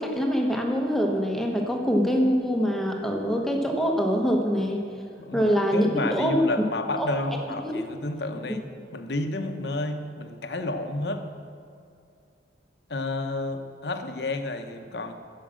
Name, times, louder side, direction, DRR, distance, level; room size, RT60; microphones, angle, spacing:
voice 1, 0.0-4.8 5.3-6.4 7.0-7.1 7.6-7.7, equal, ahead, 1 dB, 0.9 m, -24 dB
voice 2, 5.2-8.7 8.9-11.2 12.9-15.1, left 2 dB, 60° left, 6 dB, 0.9 m, -31 dB
10.0 x 7.4 x 7.5 m, 2.5 s
head